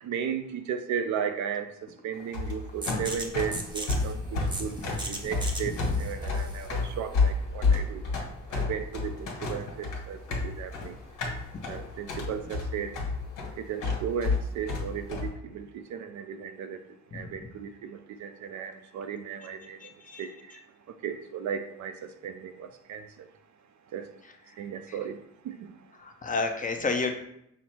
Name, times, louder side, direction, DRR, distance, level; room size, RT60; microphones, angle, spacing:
voice 1, 0.0-8.0 8.5-11.0 11.7-12.9 13.6-16.8 17.1-19.8 20.2-20.3 21.0-23.3 23.9-24.1 24.6-25.2 25.4-25.7, right 8 dB, 70° right, 9 dB, 0.5 m, -35 dB
sound 1, 2.2-15.3, left 3 dB, 85° left, 1.4 m, -30 dB
sound 2, 2.8-8.3, right 1 dB, 15° right, 0.7 m, -39 dB
voice 2, 19.8-20.2 26.0-27.2, left 3 dB, 25° left, 4 dB, 0.7 m, -30 dB
5.8 x 2.0 x 4.3 m, 0.75 s
cardioid pair, 90°, 30 cm